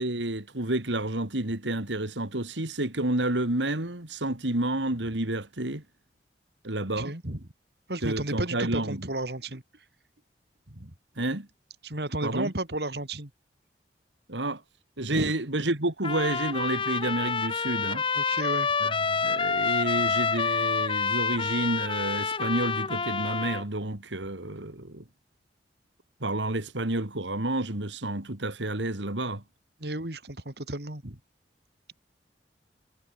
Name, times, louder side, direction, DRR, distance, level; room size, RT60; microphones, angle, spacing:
voice 1, 0.0-5.8 6.6-7.1 8.0-9.0 11.2-11.5 12.2-12.5 14.3-14.6 15.0-18.0 18.8-25.0 26.2-29.4, right 1 dB, 90° right, 3.0 m, -30 dB
voice 2, 7.0-7.4 7.9-9.8 10.7-10.9 11.8-13.3 15.1-15.3 18.1-18.7 29.8-31.2, right 1 dB, 65° right, 2.9 m, -33 dB
Trumpet, 16.0-23.6, left 5 dB, 30° left, 0.8 m, -28 dB
head